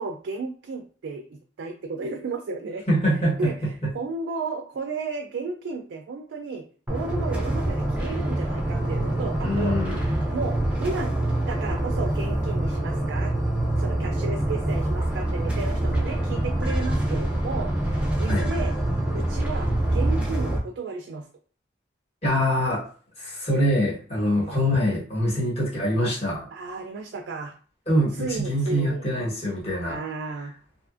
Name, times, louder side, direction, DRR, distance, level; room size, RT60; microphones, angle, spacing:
voice 1, 0.0-2.8 3.4-11.2 11.5-13.3 13.8-18.7 19.1-21.3 24.3-24.6 26.5-27.5 28.2-29.1 29.9-30.5, right 4 dB, 80° right, 3 dB, 0.3 m, -33 dB
voice 2, 2.9-3.9 9.4-10.2 18.3-18.5 22.2-22.8 23.2-26.5 27.9-30.0, equal, 35° left, -6 dB, 1.2 m, -24 dB
sound 1, 6.9-20.6, right 1 dB, 5° right, 0.4 m, -25 dB
2.7 x 2.4 x 2.4 m, 0.42 s
head